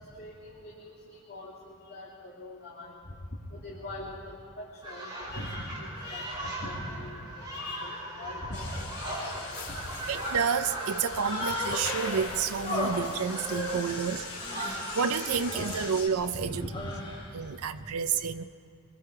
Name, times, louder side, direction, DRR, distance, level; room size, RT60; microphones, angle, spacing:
voice 1, 0.0-3.2 3.5-8.8 9.2-9.3 9.7-9.9 11.1-11.2 14.6-14.7 15.6-15.7 16.3-16.9 17.3-17.5 17.7-17.9, left 1 dB, 50° left, -4 dB, 2.6 m, -42 dB
sound 1, 4.8-15.4, right 1 dB, 20° right, 5.0 m, -39 dB
sound 2, 8.5-16.1, left 4 dB, 80° left, 4.2 m, -42 dB
voice 2, 10.1-14.3 14.6-16.7 17.3-18.4, right 6 dB, 75° right, 10 dB, 0.6 m, -30 dB
Human voice, 11.1-12.2 12.6-15.0 15.3-16.0 16.5-17.3, left 1 dB, 25° left, 4.5 m, -35 dB
24.5 x 21.5 x 4.8 m, 2.5 s
head